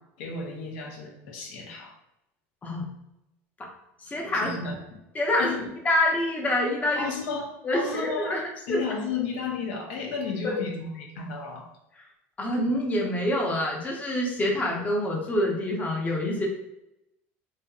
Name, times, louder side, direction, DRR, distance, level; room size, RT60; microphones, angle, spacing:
voice 1, 0.2-1.9 4.3-5.0 5.4-5.7 7.0-11.7, left 4 dB, 80° left, 1 dB, 0.6 m, -33 dB
voice 2, 4.0-4.6 5.1-5.6 5.8-7.1 7.6-8.4 8.7-8.8 10.4-10.6 12.4-16.5, left 1 dB, 20° left, -1 dB, 0.6 m, -26 dB
2.7 x 2.5 x 2.3 m, 0.87 s
supercardioid pair, 105°, 7 cm